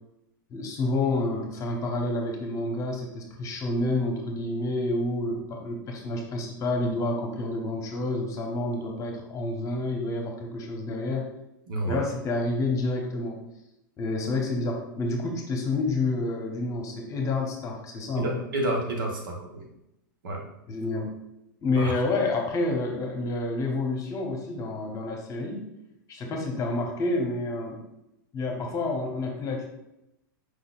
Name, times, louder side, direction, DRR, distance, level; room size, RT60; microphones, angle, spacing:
voice 1, 0.5-11.3 11.8-13.4 14.0-18.3 20.7-21.1 21.6-25.7 26.1-27.8 28.3-29.7, left 2 dB, 30° left, 1 dB, 1.0 m, -29 dB
voice 2, 11.7-12.1 18.2-19.6 20.2-20.4 21.7-21.9, right 1 dB, 75° right, 0 dB, 1.2 m, -29 dB
4.9 x 4.0 x 2.5 m, 0.86 s
hypercardioid pair, 110°, 11 cm